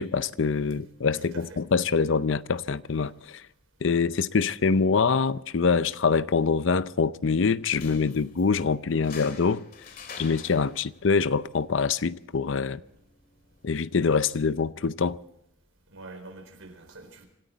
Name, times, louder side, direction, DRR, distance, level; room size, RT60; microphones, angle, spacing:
voice 1, 0.0-3.4 3.8-9.6 10.2-12.8 13.6-15.2, left 5 dB, 65° left, 0.6 m, -25 dB
voice 2, 1.2-1.6 15.9-17.2, right 2 dB, 80° right, 4.3 m, -45 dB
sound 1, 7.6-14.6, left 5 dB, 45° left, 2.2 m, -49 dB
26.0 x 13.5 x 4.1 m
head